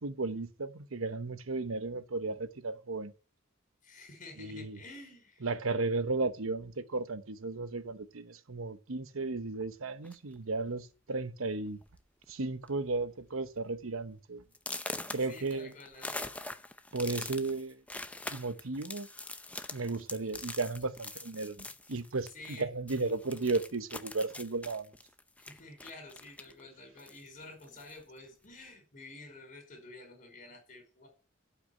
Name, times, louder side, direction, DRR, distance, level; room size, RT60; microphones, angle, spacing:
voice 1, 0.0-3.1 4.4-4.8 5.4-11.8 12.3-14.4 15.1-15.7 16.9-17.8 18.3-19.1 19.7-24.9, right 3 dB, 85° right, 1.0 m, -34 dB
voice 2, 3.8-5.5 15.3-16.4 22.3-22.7 25.5-31.1, left 2 dB, 40° left, 5.1 m, -50 dB
sound 1, 10.0-10.4 11.2-11.3 11.7-11.9 12.2-12.7 13.1-13.2 13.7-13.8 14.5-22.6 22.9-26.6 27.0-28.0, left 2 dB, 5° left, 0.6 m, -43 dB
12.0 x 5.9 x 8.8 m
head